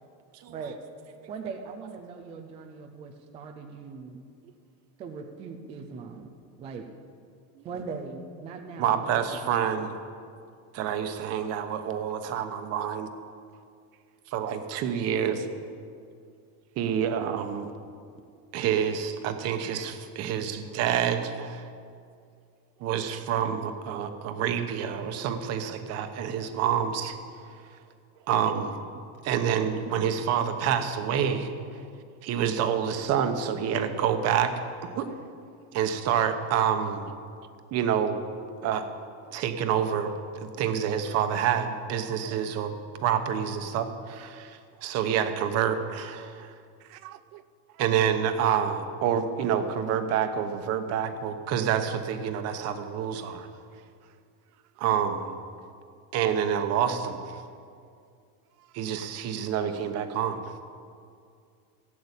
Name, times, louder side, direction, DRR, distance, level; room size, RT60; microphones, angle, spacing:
voice 1, 1.3-4.2 5.0-6.3 6.6-6.9 7.6-9.4, right 5 dB, 15° right, 5 dB, 0.3 m, -40 dB
voice 2, 8.8-9.9 10.7-13.1 14.3-15.5 16.8-17.7 18.5-21.7 22.8-27.2 28.3-28.8 29.2-31.5 32.2-34.5 34.9-35.1 35.7-37.1 37.7-38.2 38.6-38.9 39.3-42.7 43.0-46.5 47.8-53.5 54.8-55.3 56.1-57.2 58.7-60.5, right 8 dB, 35° right, 8 dB, 1.0 m, -27 dB
voice 3, 46.8-47.4 47.7-47.8 53.5-54.2 58.6-58.8, right 14 dB, 85° right, 13 dB, 0.8 m, -53 dB
16.5 x 8.6 x 8.3 m, 2.3 s
cardioid pair, 170°, 44 cm